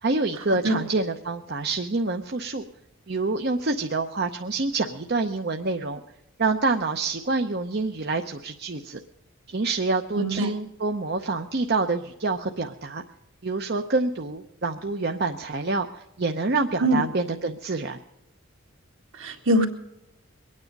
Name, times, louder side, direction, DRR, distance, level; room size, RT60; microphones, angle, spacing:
voice 1, 0.0-2.6 3.1-6.0 6.4-9.0 9.5-13.0 13.4-18.0, right 3 dB, 50° right, 4 dB, 0.7 m, -27 dB
voice 2, 10.1-10.5 16.8-17.1 19.1-19.7, right 1 dB, 65° right, 3 dB, 2.1 m, -22 dB
22.5 x 9.7 x 5.3 m, 0.89 s
head